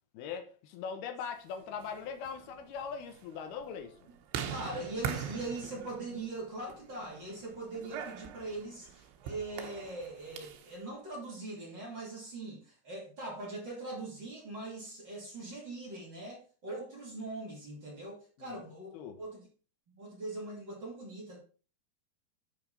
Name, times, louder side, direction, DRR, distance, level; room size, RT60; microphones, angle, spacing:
voice 1, 0.1-4.1 18.4-18.6 18.9-19.2, left 6 dB, 70° left, 2.9 m, -41 dB
sound 1, 1.6-10.7, right 8 dB, 85° right, 3.3 m, -43 dB
voice 2, 4.5-18.9 19.2-19.4 19.9-21.4, right 2 dB, 30° right, 3.0 m, -41 dB
11.5 x 5.6 x 4.2 m
omnidirectional pair, 5.0 m